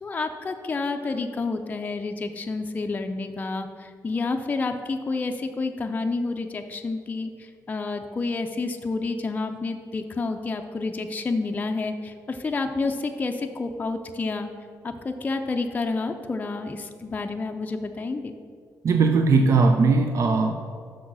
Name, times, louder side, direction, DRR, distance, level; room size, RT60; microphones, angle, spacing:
voice 1, 0.0-7.3 7.7-14.5 14.8-18.3, left 3 dB, 25° left, 4 dB, 0.4 m, -29 dB
voice 2, 18.8-20.5, right 4 dB, 50° right, 6 dB, 0.4 m, -19 dB
6.2 x 6.2 x 6.1 m, 2.1 s
cardioid pair, 135°, 7 cm